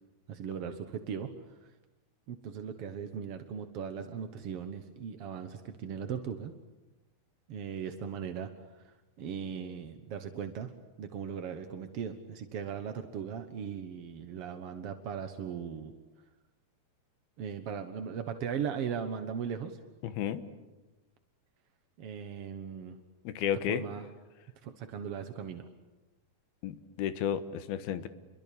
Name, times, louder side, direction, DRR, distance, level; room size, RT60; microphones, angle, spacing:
voice 1, 0.3-1.3 1.6-1.7 2.3-6.5 7.5-10.7 11.0-15.9 17.4-19.8 22.0-23.0 23.7-24.1 24.6-25.7, right 7 dB, 60° right, 7 dB, 1.6 m, -38 dB
voice 2, 20.0-20.4 23.2-23.8 26.6-28.1, left 9 dB, 85° left, 12 dB, 3.2 m, -32 dB
29.5 x 23.5 x 8.7 m, 1.1 s
omnidirectional pair, 4.3 m